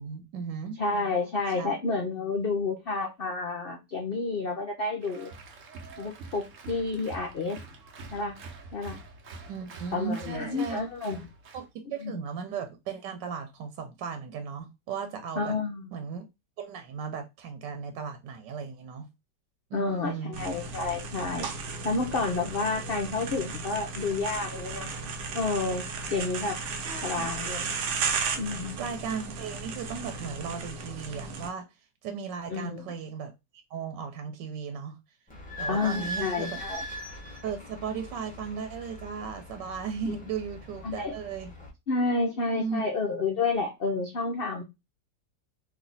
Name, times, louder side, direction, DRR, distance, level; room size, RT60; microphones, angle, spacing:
voice 1, 0.0-0.8 1.6-1.7 7.8-7.9 9.5-10.8 11.5-15.6 15.9-16.2 16.6-19.1 19.7-20.4 26.8-27.6 28.8-31.7 32.0-33.3 33.7-35.0 35.6-36.6 37.4-41.5 42.5-42.8, right 6 dB, 90° right, 1.3 m, -36 dB
voice 2, 0.8-5.3 6.0-7.6 8.1-8.4 8.7-9.0 9.9-11.3 12.0-12.2 15.4-15.9 19.7-24.9 25.3-26.6 27.0-27.7 28.4-28.8 32.5-32.9 35.7-36.8 40.8-41.1 41.9-44.6, left 3 dB, 70° left, 0.5 m, -30 dB
Applause, 5.0-11.7, right 3 dB, 55° right, 1.1 m, -46 dB
sound 1, 20.3-31.5, right 4 dB, 70° right, 1.3 m, -35 dB
Idling / Squeak, 35.3-41.7, equal, 5° left, 0.7 m, -40 dB
3.2 x 2.7 x 4.0 m
omnidirectional pair, 1.9 m